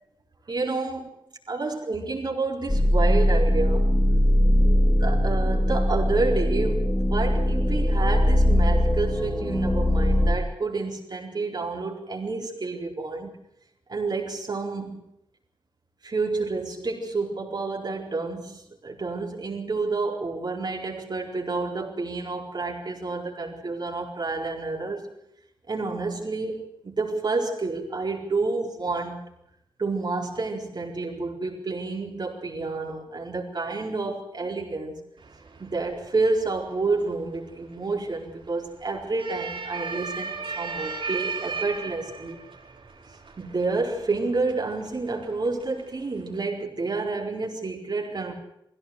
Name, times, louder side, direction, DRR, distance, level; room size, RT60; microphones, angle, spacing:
voice 1, 0.5-1.1 1.5-3.9 4.8-13.3 13.9-15.0 16.0-25.0 25.7-29.2 29.8-35.0 35.6-42.4 43.4-48.3, right 3 dB, 55° right, 0 dB, 4.4 m, -29 dB
sound 1, 2.7-10.3, left 1 dB, 15° left, 4.3 m, -21 dB
sound 2, 35.2-46.4, right 5 dB, 75° right, 5.0 m, -38 dB
21.0 x 16.5 x 8.0 m, 0.77 s
wide cardioid pair, 100°, 9 cm